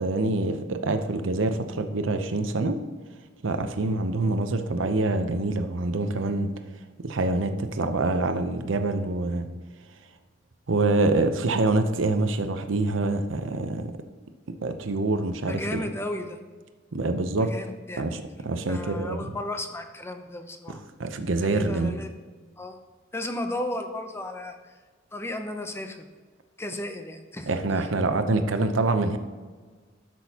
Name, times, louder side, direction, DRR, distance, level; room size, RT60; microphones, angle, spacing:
voice 1, 0.0-2.8 3.4-6.5 7.0-9.5 10.7-13.9 14.6-15.9 16.9-17.5 18.0-19.2 21.0-22.0 27.5-29.2, right 2 dB, 85° right, 8 dB, 0.7 m, -25 dB
voice 2, 15.5-16.4 17.4-18.1 18.7-20.8 21.5-22.1 22.6-22.8 23.1-24.7 25.1-26.1 26.6-27.9, left 1 dB, 15° left, 6 dB, 0.6 m, -34 dB
12.5 x 6.2 x 2.9 m, 1.4 s
head